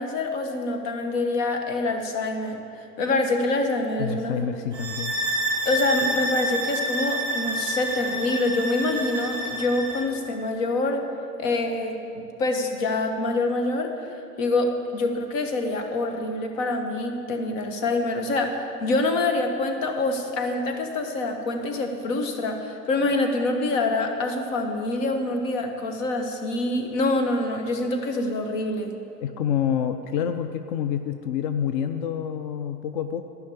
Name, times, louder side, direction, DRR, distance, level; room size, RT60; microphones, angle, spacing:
voice 1, 0.0-4.4 5.6-11.1 11.4-13.9 14.4-28.9, left 2 dB, 55° left, 4 dB, 1.6 m, -26 dB
voice 2, 4.0-5.1 29.2-33.2, left 8 dB, 35° left, 9 dB, 0.4 m, -27 dB
sound 1, 4.7-10.1, right 1 dB, 10° right, 1.4 m, -28 dB
11.5 x 5.8 x 8.6 m, 2.5 s
hypercardioid pair, 105°, 47 cm